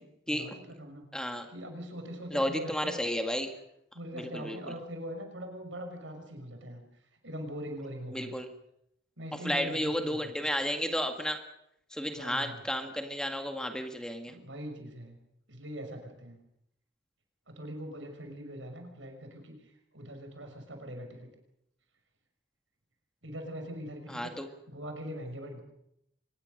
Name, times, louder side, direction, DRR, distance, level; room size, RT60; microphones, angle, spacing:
voice 1, 0.0-1.1 1.5-3.0 3.9-6.8 7.2-8.4 9.2-10.5 12.1-12.6 14.3-15.2 15.5-16.4 17.5-21.3 23.2-25.6, equal, 85° right, 5 dB, 5.9 m, -42 dB
voice 2, 1.1-1.5 2.3-3.5 4.3-4.6 8.1-8.5 9.4-11.4 11.9-14.3 24.1-24.5, equal, 5° left, 5 dB, 1.9 m, -32 dB
24.5 x 21.0 x 6.7 m, 0.77 s
head